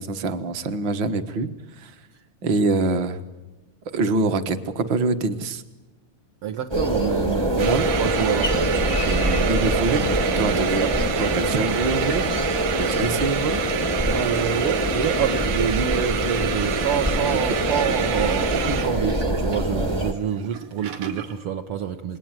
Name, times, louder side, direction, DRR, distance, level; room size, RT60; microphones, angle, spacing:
voice 1, 0.0-1.5 1.8-1.9 2.4-3.2 3.9-5.6 7.7-7.9 9.5-10.9 11.2-12.3 12.8-13.6 20.4-20.5, right 3 dB, 50° right, 9 dB, 1.5 m, -25 dB
voice 2, 6.4-11.0 11.3-11.7 14.0-22.2, right 9 dB, 65° right, 4 dB, 1.4 m, -28 dB
sound 1, 6.7-20.1, right 1 dB, 15° right, 0.8 m, -24 dB
sound 2, 7.6-21.4, right 9 dB, 90° right, 3.8 m, -30 dB
27.5 x 22.0 x 9.1 m, 1.1 s
omnidirectional pair, 3.8 m